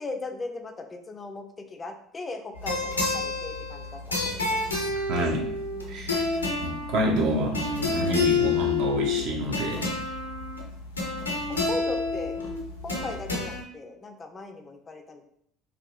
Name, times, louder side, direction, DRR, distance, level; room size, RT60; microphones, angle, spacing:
voice 1, 0.0-4.6 5.7-6.2 11.7-12.4 12.8-15.2, left 3 dB, 25° left, 5 dB, 0.3 m, -38 dB
sound 1, 2.6-13.6, left 4 dB, 85° left, 0.4 m, -29 dB
voice 2, 5.1-5.5 5.9-6.2 6.6-9.9, right 1 dB, 55° right, 0 dB, 0.6 m, -28 dB
2.6 x 2.2 x 2.4 m, 0.71 s
figure-of-eight pair, 65°, 0 cm